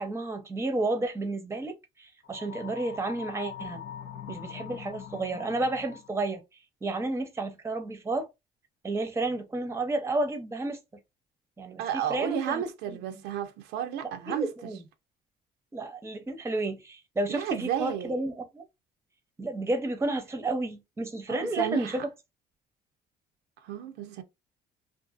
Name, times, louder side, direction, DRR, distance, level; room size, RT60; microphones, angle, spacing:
voice 1, 0.0-3.8 4.3-6.4 6.8-8.3 8.8-10.8 11.6-13.0 14.3-14.8 15.7-18.6 19.4-22.1, right 2 dB, 15° right, 0.6 m, -31 dB
sound 1, 2.2-6.2, left 9 dB, 80° left, 0.5 m, -42 dB
voice 2, 11.8-14.5 17.3-18.1 21.3-22.0 23.6-24.2, right 10 dB, 90° right, 0.5 m, -32 dB
2.5 x 2.4 x 2.4 m
cardioid pair, 110°, 17 cm